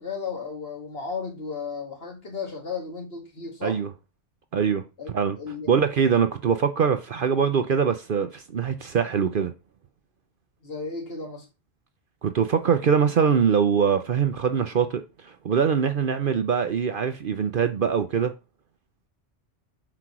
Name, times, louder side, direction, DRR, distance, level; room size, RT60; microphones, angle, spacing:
voice 1, 0.0-3.8 5.0-5.7 6.1-6.2 10.6-11.5, left 5 dB, 55° left, 2.2 m, -34 dB
voice 2, 4.5-4.8 5.1-5.4 5.7-9.5 12.2-18.3, right 7 dB, 55° right, 0.8 m, -23 dB
6.0 x 4.5 x 6.0 m
omnidirectional pair, 1.2 m